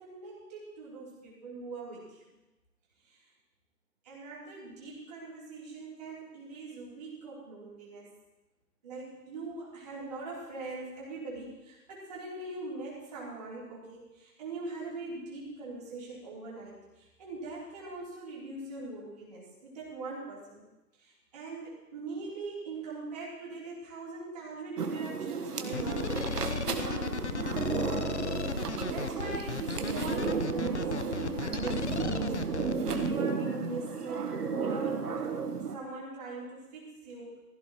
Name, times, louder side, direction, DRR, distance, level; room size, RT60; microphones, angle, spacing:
voice 1, 0.0-2.2 4.0-8.1 8.8-20.6 21.0-27.4 28.4-29.5 29.8-35.0 35.7-37.4, right 3 dB, 25° right, -6 dB, 3.6 m, -42 dB
sound 1, 24.8-35.8, right 5 dB, 65° right, 1.5 m, -33 dB
sound 2, 25.7-33.1, left 4 dB, 45° left, 0.7 m, -35 dB
16.0 x 15.5 x 3.1 m, 1.0 s
hypercardioid pair, 170°, 50 cm